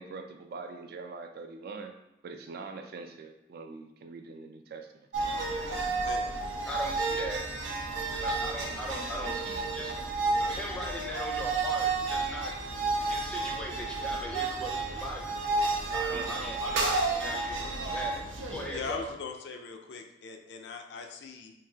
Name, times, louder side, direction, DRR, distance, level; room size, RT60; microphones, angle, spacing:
voice 1, 0.0-1.9 2.2-4.9 16.0-16.3, right 4 dB, 55° right, 6 dB, 0.3 m, -43 dB
sound 1, 5.1-19.1, right 3 dB, 90° right, 0.6 m, -31 dB
voice 2, 6.6-7.4 8.1-12.5 13.1-15.3 15.9-18.2 18.5-19.1, equal, 5° left, -1 dB, 0.5 m, -39 dB
voice 3, 18.7-21.5, left 4 dB, 65° left, 4 dB, 0.4 m, -40 dB
3.8 x 2.7 x 2.8 m, 0.89 s
head